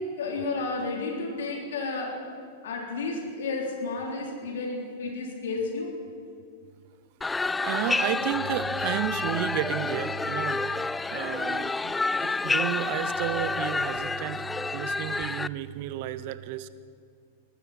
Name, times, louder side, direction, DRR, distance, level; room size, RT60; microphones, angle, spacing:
voice 1, 0.0-2.2 2.6-5.9, left 3 dB, 75° left, 0 dB, 3.4 m, -32 dB
sound 1, 7.2-15.5, left 3 dB, 10° left, 0.3 m, -29 dB
voice 2, 7.6-10.8 11.1-12.0 12.2-16.7, right 13 dB, 55° right, 15 dB, 0.7 m, -32 dB
19.5 x 14.5 x 4.3 m, 2.3 s
hypercardioid pair, 100°, 0 cm